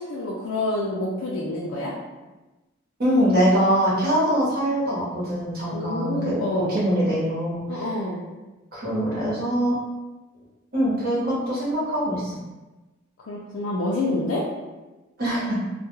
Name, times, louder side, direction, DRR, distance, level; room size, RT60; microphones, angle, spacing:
voice 1, 0.0-1.9 5.7-6.8 7.7-8.2 13.2-14.5, left 1 dB, 80° left, -4 dB, 0.4 m, -27 dB
voice 2, 3.0-6.3 6.7-7.9 8.7-9.7 10.7-12.4 15.2-15.7, equal, 50° right, -7 dB, 0.9 m, -23 dB
2.2 x 2.2 x 3.0 m, 1.1 s
head